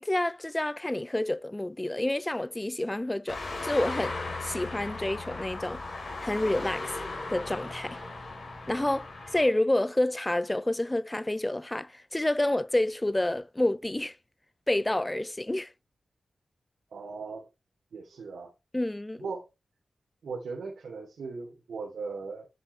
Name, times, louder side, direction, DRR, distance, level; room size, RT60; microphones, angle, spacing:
voice 1, 0.0-5.8 6.2-6.9 7.3-8.0 8.7-14.1 14.7-15.7 18.7-19.3, left 1 dB, 15° left, 0.4 m, -29 dB
sound 1, 3.3-9.5, left 3 dB, 40° left, 3.4 m, -37 dB
voice 2, 16.9-17.5 17.9-18.5 19.2-19.5 20.2-22.5, right 4 dB, 85° right, 3.0 m, -38 dB
10.5 x 7.3 x 3.2 m
wide cardioid pair, 125°, 0 cm